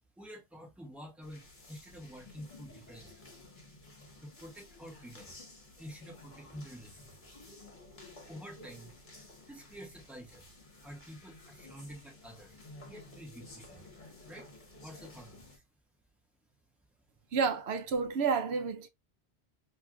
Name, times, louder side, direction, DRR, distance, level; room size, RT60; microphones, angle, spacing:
voice 1, 0.2-3.3 4.2-5.4 5.8-7.3 8.2-8.9 9.5-10.5 10.8-12.6 12.9-13.9 14.3-14.5 14.8-15.6, equal, ahead, 1.4 m, -49 dB
sound 1, 1.2-15.6, left 2 dB, 45° left, 1.6 m, -53 dB
voice 2, 17.3-18.9, right 5 dB, 70° right, 0.9 m, -30 dB
4.6 x 3.1 x 2.3 m
omnidirectional pair, 1.2 m